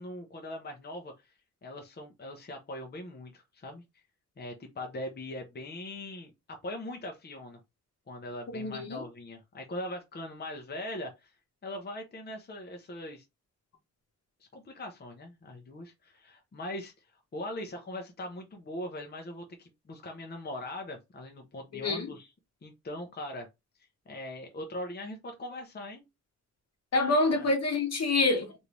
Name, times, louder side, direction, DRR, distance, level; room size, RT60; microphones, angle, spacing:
voice 1, 0.0-1.3 1.6-4.0 4.4-7.6 8.1-11.3 11.6-13.2 14.5-16.9 17.3-22.3 22.6-23.5 24.1-26.0 27.3-27.5, left 1 dB, 35° left, 0.7 m, -41 dB
voice 2, 8.5-9.0 21.7-22.1 26.9-28.7, left 2 dB, 60° left, 1.0 m, -27 dB
3.2 x 2.6 x 2.9 m
wide cardioid pair, 135°, 29 cm